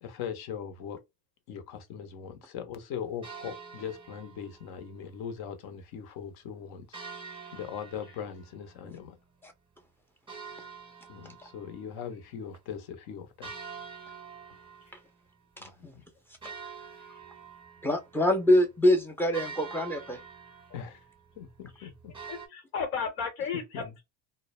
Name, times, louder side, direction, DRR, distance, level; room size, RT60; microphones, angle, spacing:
voice 1, 0.0-1.0 1.5-7.0 7.5-9.2 11.1-13.5 15.6-15.9 20.7-21.0 21.4-22.1 23.5-23.9, left 8 dB, 60° left, 0.8 m, -40 dB
sound 1, 3.2-4.9 6.9-9.4 10.3-12.3 12.5-12.6 13.4-15.4 15.8-15.9 16.4-22.5, right 5 dB, 10° right, 0.8 m, -46 dB
voice 2, 15.6-16.0 17.8-20.2, left 1 dB, 5° left, 0.4 m, -25 dB
voice 3, 22.3-24.0, left 6 dB, 80° left, 1.1 m, -34 dB
2.1 x 2.0 x 3.0 m
supercardioid pair, 110°, 42 cm